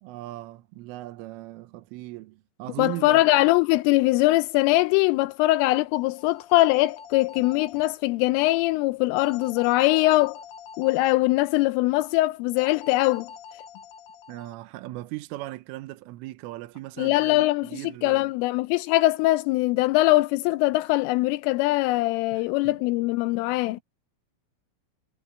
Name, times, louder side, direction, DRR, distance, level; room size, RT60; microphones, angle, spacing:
voice 1, 0.0-3.3 14.3-18.3 22.3-22.8 23.5-23.8, right 17 dB, 85° right, 3.5 m, -38 dB
voice 2, 2.8-10.4 10.8-13.3 17.0-17.7 18.0-23.8, left 19 dB, 85° left, 3.2 m, -22 dB
sound 1, 5.9-7.9 9.2-11.2 12.6-14.6, left 7 dB, 70° left, 2.2 m, -44 dB
omnidirectional pair, 5.7 m